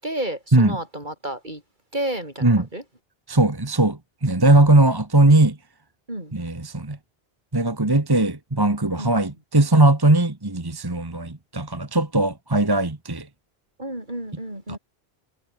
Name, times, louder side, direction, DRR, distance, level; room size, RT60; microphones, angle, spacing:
voice 1, 0.0-1.6 1.9-2.8 6.1-6.3 9.0-9.1 13.8-14.8, right 1 dB, 50° right, 7.8 m, -31 dB
voice 2, 3.3-5.6 6.3-7.0 7.5-13.3 14.7-14.8, right 2 dB, 20° right, 1.6 m, -19 dB
omnidirectional pair, 1.0 m